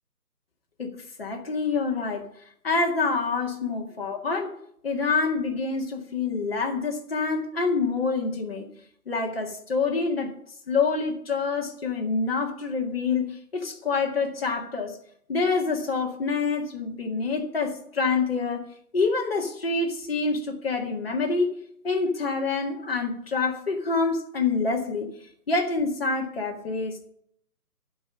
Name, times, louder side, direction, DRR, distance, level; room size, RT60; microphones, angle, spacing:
voice 1, 0.8-2.3 2.6-4.5 4.8-8.7 9.1-10.3 10.7-15.0 15.3-18.7 18.9-21.6 21.8-25.1 25.5-27.1, left 4 dB, 35° left, 1 dB, 1.9 m, -26 dB
12.5 x 5.4 x 8.7 m, 0.70 s
figure-of-eight pair, 170°, 48 cm